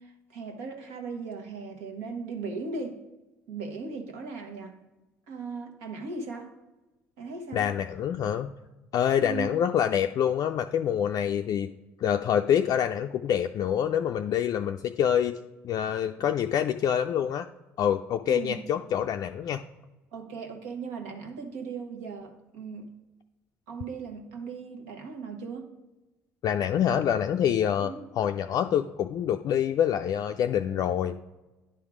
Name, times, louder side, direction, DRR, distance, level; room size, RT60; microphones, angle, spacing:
voice 1, 0.0-3.0 3.5-4.8 5.3-6.5 7.2-7.7 9.2-9.5 18.3-18.5 20.1-22.9 23.7-25.7 27.8-28.0, right 4 dB, 75° right, 3 dB, 1.2 m, -38 dB
voice 2, 7.5-8.5 8.9-11.7 12.0-15.4 15.6-17.5 17.8-19.6 26.4-31.2, left 9 dB, 50° left, 4 dB, 0.4 m, -26 dB
10.0 x 3.5 x 4.9 m, 1.1 s
hypercardioid pair, 55°, 8 cm